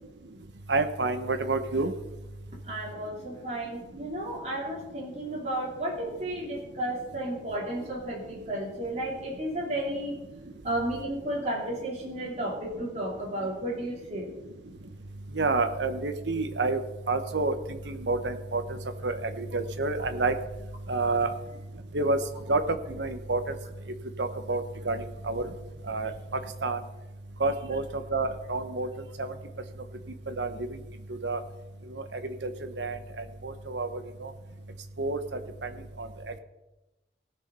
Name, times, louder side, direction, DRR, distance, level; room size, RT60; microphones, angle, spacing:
voice 1, 0.7-1.9 15.3-16.8 17.1-18.8 19.0-20.3 20.9-21.3 21.9-22.2 22.5-23.5 24.2-25.5 25.9-26.1 26.6-26.8 27.4-28.9 29.2-29.3 30.3-30.5 31.2-31.4 32.1-32.5 32.8-33.0 33.4-33.9 34.2-34.3 35.0-35.2 35.6-35.7 36.0-36.1, right 3 dB, 80° right, 8 dB, 1.0 m, -28 dB
voice 2, 2.7-10.2 10.6-14.3, right 1 dB, 40° right, -3 dB, 3.0 m, -33 dB
18.0 x 6.4 x 5.5 m, 1.0 s
head